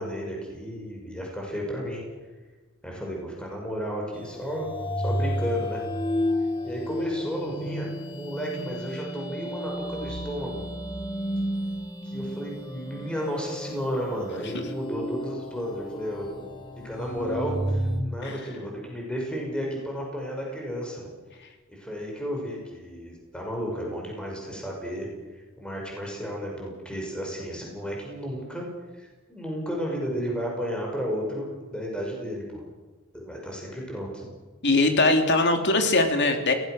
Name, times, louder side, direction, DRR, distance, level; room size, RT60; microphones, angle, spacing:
voice 1, 0.0-2.0 2.8-4.7 5.0-5.8 6.6-10.6 12.0-16.5 16.8-21.0 21.7-25.1 25.6-28.7 28.9-32.6 33.1-34.2, equal, 5° left, -1 dB, 6.1 m, -33 dB
sound 1, 4.1-18.0, equal, 25° left, 1.9 m, -32 dB
voice 2, 34.6-36.5, left 2 dB, 55° left, 5 dB, 3.0 m, -21 dB
22.0 x 18.0 x 6.6 m, 1.2 s
head